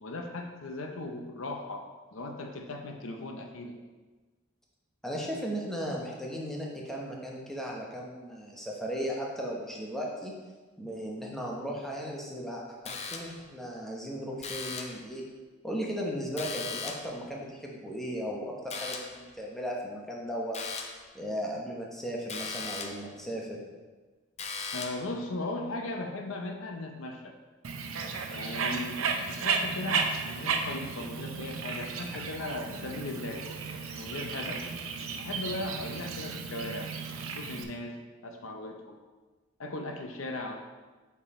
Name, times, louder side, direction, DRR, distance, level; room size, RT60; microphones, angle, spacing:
voice 1, 0.0-1.8 2.1-3.7 24.7-27.3 28.3-33.4 33.9-34.6 35.2-36.9 37.2-38.0 38.2-39.0 39.6-40.5, left 2 dB, 75° left, 3 dB, 0.7 m, -37 dB
voice 2, 5.0-10.3 10.8-15.2 15.6-20.6 21.1-23.6 32.1-32.2, equal, ahead, -3 dB, 0.9 m, -36 dB
sound 1, 12.9-13.5 14.4-15.1 16.4-17.2 18.7-19.2 20.5-21.1 22.3-23.1 24.4-25.1, left 5 dB, 30° left, 0.5 m, -38 dB
Bird, 27.6-37.6, right 5 dB, 85° right, 0.6 m, -34 dB
5.5 x 4.6 x 4.2 m, 1.3 s
head